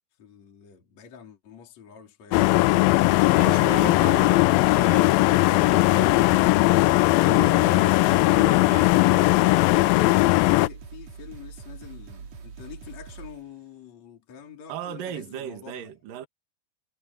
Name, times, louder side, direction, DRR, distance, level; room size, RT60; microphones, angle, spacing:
voice 1, 0.2-3.5 10.5-15.9, left 8 dB, 45° left, 4.4 m, -47 dB
sound 1, 2.3-10.7, left 20 dB, 85° left, 2.2 m, -19 dB
voice 2, 3.2-6.7 7.2-9.9 14.7-16.3, right 9 dB, 60° right, 3.4 m, -37 dB
sound 2, 7.5-8.2 8.9-9.0 9.3-13.5, right 5 dB, 45° right, 3.1 m, -43 dB
omnidirectional pair, 4.6 m